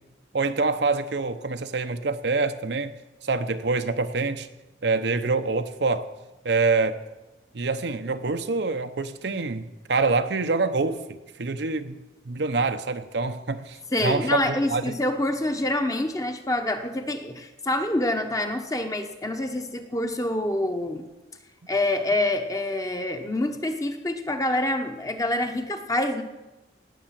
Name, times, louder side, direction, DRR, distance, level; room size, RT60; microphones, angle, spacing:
voice 1, 0.3-2.9 3.2-4.5 4.8-6.1 6.4-7.0 7.5-12.0 12.2-15.0, right 3 dB, 70° right, 9 dB, 0.7 m, -26 dB
voice 2, 13.9-21.1 21.7-26.2, left 1 dB, 20° left, 6 dB, 0.9 m, -26 dB
18.5 x 6.7 x 7.5 m, 1.1 s
head